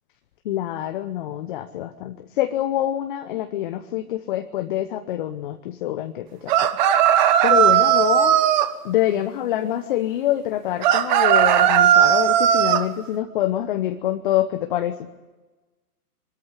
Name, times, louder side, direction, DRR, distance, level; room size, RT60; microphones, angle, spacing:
voice 1, 0.4-6.5 7.4-8.3 8.8-14.9, left 12 dB, 35° left, 7 dB, 1.0 m, -25 dB
sound 1, 6.5-8.7 10.8-12.8, right 11 dB, 30° right, 1.2 m, -17 dB
23.5 x 13.5 x 9.8 m, 1.2 s
hypercardioid pair, 145°, 46 cm